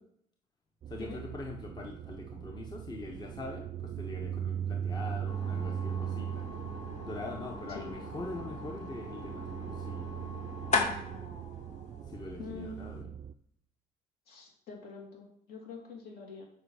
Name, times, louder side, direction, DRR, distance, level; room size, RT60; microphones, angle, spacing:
sound 1, 0.8-13.3, right 9 dB, 35° right, 0.4 m, -39 dB
voice 1, 0.9-6.4 7.0-10.1 12.1-13.1, left 2 dB, 25° left, 2 dB, 0.9 m, -43 dB
sound 2, 5.3-13.0, left 3 dB, 40° left, 1.8 m, -39 dB
voice 2, 7.7-8.0 12.4-12.8 14.3-16.5, left 4 dB, 65° left, -1 dB, 2.9 m, -45 dB
7.7 x 5.4 x 4.9 m, 0.72 s
cardioid pair, 110°, 17 cm